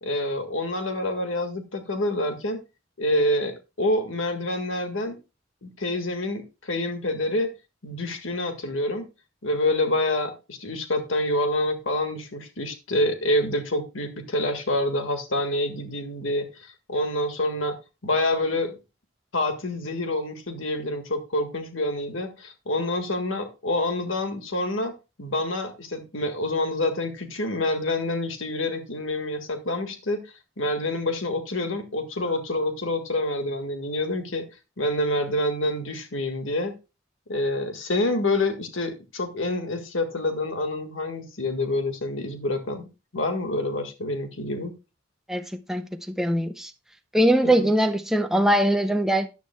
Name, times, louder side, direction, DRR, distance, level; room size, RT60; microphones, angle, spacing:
voice 1, 0.0-2.6 3.0-5.2 5.6-7.5 7.8-9.1 9.4-17.8 18.0-18.8 19.3-24.9 25.2-30.2 30.6-34.5 34.8-36.7 37.3-42.9 43.1-44.7 47.4-47.7, left 1 dB, 75° left, 1.7 m, -27 dB
voice 2, 45.3-46.7 47.1-49.3, right 1 dB, ahead, 0.6 m, -22 dB
13.5 x 9.3 x 2.2 m
head